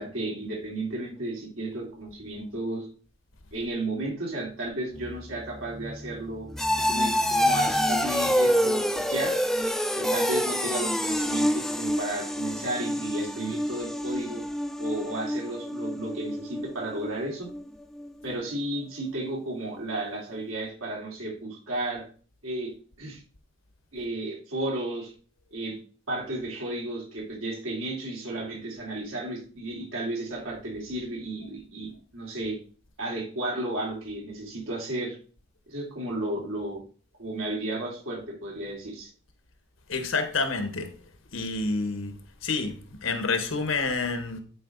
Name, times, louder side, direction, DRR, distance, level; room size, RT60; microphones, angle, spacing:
voice 1, 0.0-2.9 3.5-6.5 6.8-9.4 10.0-14.4 14.8-17.5 18.2-22.0 22.4-22.7 23.0-23.2 23.9-25.1 25.5-25.8 26.1-32.6 33.0-35.2 35.7-36.8 37.2-39.1, right 1 dB, 90° right, 3.5 m, -33 dB
sound 1, 4.9-17.6 18.0-18.4 18.8-18.9, equal, ahead, 0.4 m, -27 dB
voice 2, 39.9-40.9 41.3-42.1 42.4-44.4, left 3 dB, 80° left, 1.3 m, -28 dB
11.0 x 4.8 x 3.9 m
head